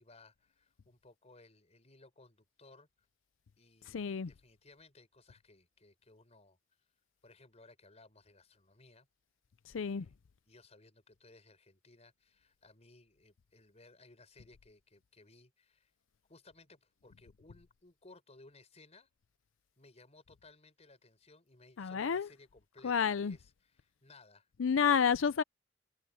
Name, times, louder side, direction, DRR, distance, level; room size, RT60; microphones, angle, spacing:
voice 1, 0.0-2.9 3.6-6.6 7.2-9.1 9.7-10.2 10.5-15.9 16.3-19.1 19.8-24.5, left 3 dB, 35° left, 4.6 m, -61 dB
voice 2, 3.9-4.3 9.7-10.1 21.8-22.3 22.8-23.4 24.6-25.4, left 6 dB, 85° left, 0.5 m, -30 dB
head